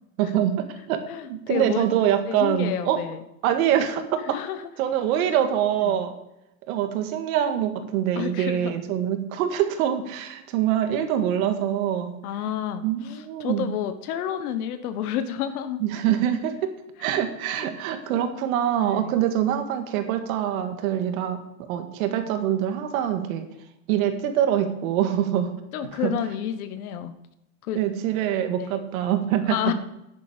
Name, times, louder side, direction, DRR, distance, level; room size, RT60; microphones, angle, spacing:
voice 1, 0.2-1.0 1.3-3.0 3.4-4.4 4.8-6.1 6.7-12.2 12.8-13.7 15.8-16.7 17.0-23.5 23.9-25.5 26.0-26.1 27.7-29.6, right 10 dB, 70° right, 7 dB, 1.9 m, -24 dB
voice 2, 1.1-1.9 2.3-3.2 4.3-4.6 5.8-6.0 8.2-8.7 12.2-15.8 16.1-16.2 17.5-17.7 18.8-19.1 25.7-27.1 27.6-27.8 28.6-28.8 29.5-29.7, left 10 dB, 85° left, 10 dB, 1.2 m, -30 dB
10.5 x 10.0 x 5.0 m, 0.87 s
supercardioid pair, 145°, 43 cm